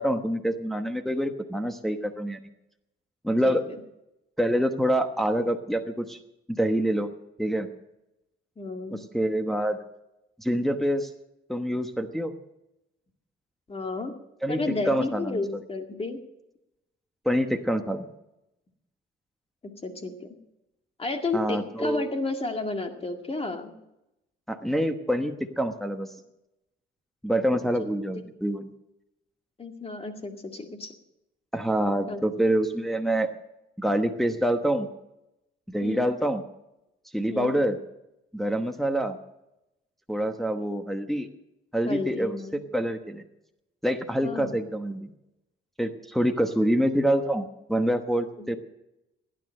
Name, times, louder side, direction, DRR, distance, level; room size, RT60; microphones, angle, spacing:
voice 1, 0.0-2.4 3.2-3.6 4.4-6.2 6.5-7.1 7.4-7.7 8.9-9.8 10.4-11.1 11.5-12.3 14.4-14.6 14.9-15.4 17.2-18.1 21.3-22.0 24.5-26.1 27.2-28.7 31.5-33.3 33.8-34.9 35.7-36.4 37.1-37.8 38.3-39.2 40.1-41.3 41.7-42.4 42.7-43.2 43.8-45.1 45.8-48.6, right 1 dB, ahead, 5 dB, 1.1 m, -26 dB
voice 2, 3.4-3.8 8.6-9.0 13.7-14.1 14.5-16.2 19.8-20.3 21.0-23.7 27.6-27.9 28.1-28.2 29.6-30.9 32.1-32.3 35.8-36.1 37.3-37.6 41.9-42.6 44.2-44.6 48.4-48.5, left 3 dB, 30° left, 5 dB, 2.1 m, -32 dB
16.5 x 10.0 x 6.5 m, 0.90 s
cardioid pair, 90°, 20 cm